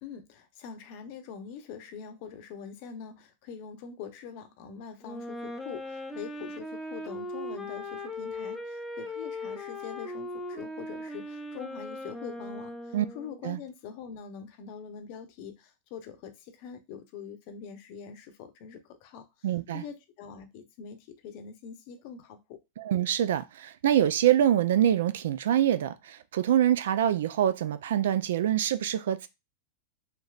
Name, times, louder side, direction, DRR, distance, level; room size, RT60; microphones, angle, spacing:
voice 1, 0.0-19.2 19.7-22.6, left 7 dB, 50° left, 0.7 m, -44 dB
Wind instrument woodwind instrument, 5.0-13.4, left 1 dB, 5° left, 0.5 m, -39 dB
voice 2, 19.4-19.8 22.8-29.3, right 11 dB, 75° right, 0.3 m, -25 dB
3.4 x 2.7 x 2.3 m
hypercardioid pair, 130°, 0 cm